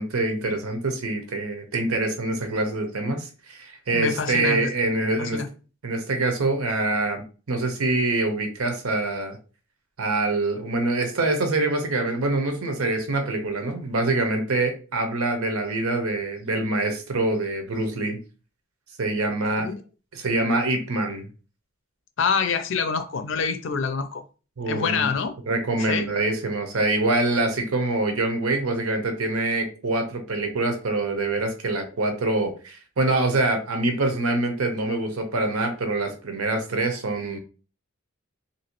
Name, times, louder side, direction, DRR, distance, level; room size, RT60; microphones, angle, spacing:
voice 1, 0.0-5.4 5.8-9.4 10.0-18.2 19.0-19.7 20.1-21.2 24.6-25.1 25.5-37.4, right 2 dB, 90° right, 0.8 m, -25 dB
voice 2, 3.9-4.7 5.2-5.5 19.6-19.7 22.2-24.2 24.7-25.3 25.8-26.1, left 5 dB, 60° left, 0.4 m, -26 dB
3.0 x 2.7 x 2.9 m
head